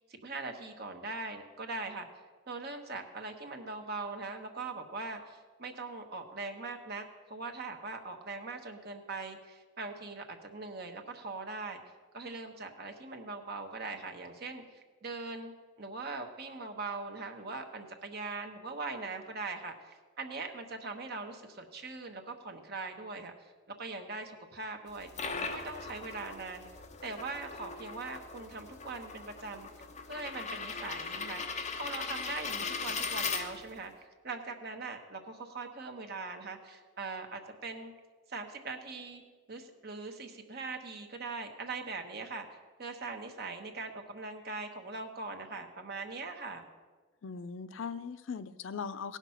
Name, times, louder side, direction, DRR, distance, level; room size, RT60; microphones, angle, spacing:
voice 1, 0.2-2.1 2.5-7.0 7.3-11.8 12.1-14.6 15.0-15.5 15.8-23.3 23.8-25.1 25.4-26.7 27.0-29.7 30.1-31.4 31.8-33.9 34.2-37.9 38.3-39.2 39.5-42.5 42.8-46.6, right 3 dB, 55° right, 4 dB, 1.1 m, -41 dB
sound 1, 24.9-33.9, left 5 dB, 35° left, 0.9 m, -39 dB
voice 2, 47.2-49.2, left 5 dB, 70° left, 13 dB, 0.5 m, -39 dB
17.0 x 6.0 x 5.7 m, 1.4 s
head